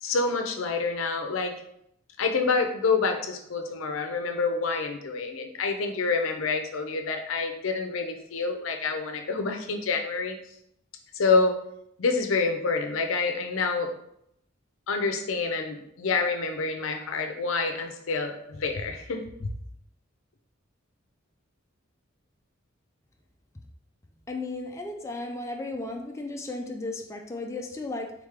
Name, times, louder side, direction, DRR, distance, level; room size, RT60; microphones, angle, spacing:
voice 1, 0.0-1.5 2.2-10.4 11.1-11.6 12.0-13.9 14.9-19.5, left 4 dB, 80° left, 5 dB, 0.5 m, -27 dB
voice 2, 24.3-28.1, left 2 dB, 15° left, 2 dB, 0.4 m, -35 dB
3.6 x 3.3 x 3.6 m, 0.75 s
head